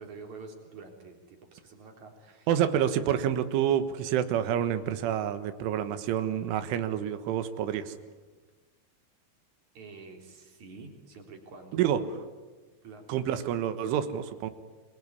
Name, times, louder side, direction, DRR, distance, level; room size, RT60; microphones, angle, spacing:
voice 1, 0.0-2.5 9.7-12.1 12.8-13.0, right 4 dB, 40° right, 3 dB, 4.6 m, -47 dB
voice 2, 2.5-7.9 11.7-12.0 13.1-14.5, right 10 dB, 80° right, 11 dB, 3.8 m, -28 dB
27.0 x 22.0 x 9.8 m, 1.3 s
omnidirectional pair, 5.6 m